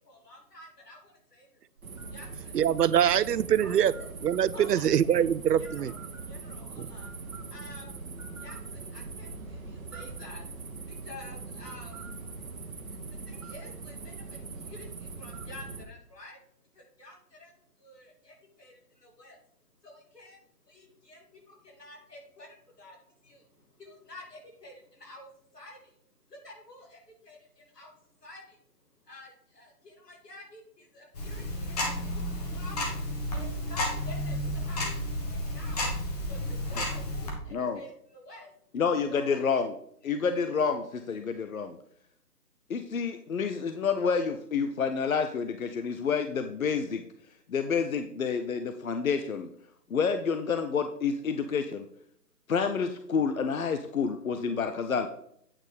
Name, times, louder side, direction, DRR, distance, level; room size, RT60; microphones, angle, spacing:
voice 1, 0.0-1.5 2.1-2.5 3.6-3.7 4.5-5.2 5.7-5.9 6.3-7.1 7.5-7.9 8.4-10.5 10.7-12.0 13.3-16.4 16.7-17.5 17.8-19.4 19.8-20.4 20.7-23.0 23.2-23.4 23.8-25.3 25.5-25.8 26.3-27.9 28.2-28.6 29.1-32.8 33.3-35.9 36.3-38.5 39.1-39.4, left 2 dB, 80° left, -1 dB, 3.3 m, -49 dB
sound 1, 1.8-15.8, right 3 dB, 60° right, 1.3 m, -41 dB
voice 2, 2.5-3.9 4.2-5.9 6.8-6.9, right 9 dB, 80° right, 18 dB, 0.6 m, -24 dB
Tick-tock, 31.1-37.3, left 1 dB, 25° left, 1.4 m, -32 dB
voice 3, 37.5-37.8 38.7-39.7 40.0-41.8 42.7-47.0 47.5-49.5 49.9-51.8 52.5-55.1, left 5 dB, 60° left, 8 dB, 0.7 m, -29 dB
8.9 x 4.1 x 5.0 m, 0.69 s
figure-of-eight pair, 150°, 47 cm